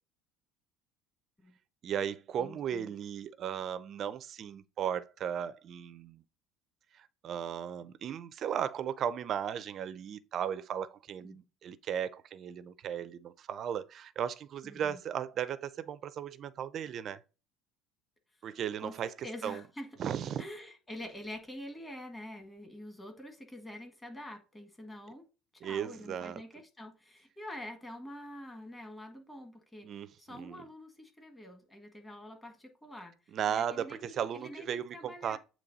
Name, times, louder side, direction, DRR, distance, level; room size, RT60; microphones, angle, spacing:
voice 1, 1.8-6.2 6.9-17.2 18.4-19.6 20.0-20.4 25.6-26.4 29.8-30.6 33.3-35.4, right 9 dB, 45° right, 0.4 m, -36 dB
voice 2, 2.4-2.9 11.2-11.4 14.6-15.0 18.8-19.9 20.4-25.3 25.6-29.9 30.2-33.1 33.5-35.4, left 1 dB, 10° left, 1.6 m, -46 dB
8.4 x 3.1 x 4.0 m
cardioid pair, 125°, 0 cm